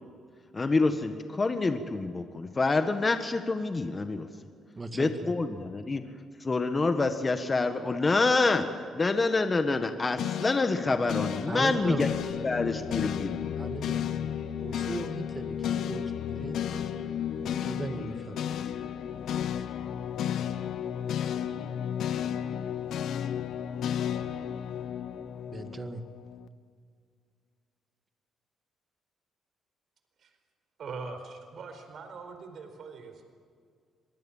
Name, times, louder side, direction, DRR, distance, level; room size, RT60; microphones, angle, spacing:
voice 1, 0.5-4.3 4.9-6.0 6.4-8.7 8.9-12.1 12.4-13.4, left 3 dB, 30° left, 7 dB, 1.6 m, -27 dB
voice 2, 4.8-5.3 11.5-12.0 13.6-14.1 14.6-16.6 17.6-18.4 25.5-26.0, right 3 dB, 25° right, 8 dB, 1.9 m, -37 dB
sound 1, 10.2-26.5, left 9 dB, 75° left, 1.1 m, -33 dB
voice 3, 30.8-33.2, right 4 dB, 60° right, 7 dB, 4.5 m, -42 dB
25.0 x 20.0 x 7.4 m, 2.1 s
cardioid pair, 90°, 0 cm